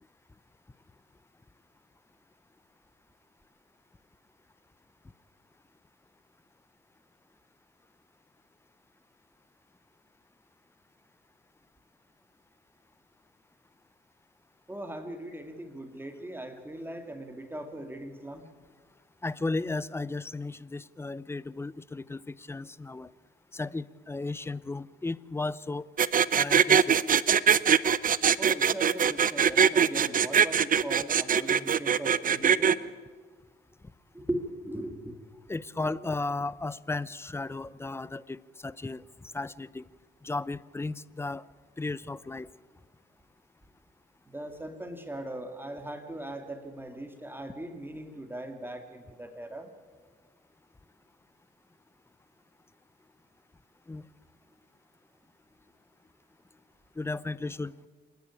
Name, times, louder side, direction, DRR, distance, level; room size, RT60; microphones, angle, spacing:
voice 1, 14.7-18.5 28.4-32.8 34.1-35.1 35.8-36.1 44.3-49.7, right 1 dB, 10° right, 6 dB, 2.2 m, -39 dB
voice 2, 19.2-23.1 23.5-25.8 26.3-27.0 35.5-39.0 39.3-39.9 40.2-41.5 41.8-42.5 53.9-54.0 57.0-57.9, left 3 dB, 10° left, 19 dB, 0.6 m, -35 dB
sound 1, 26.0-32.7, right 7 dB, 45° right, 0.7 m, -22 dB
26.5 x 10.5 x 9.8 m, 1.5 s
cardioid pair, 90°, 20 cm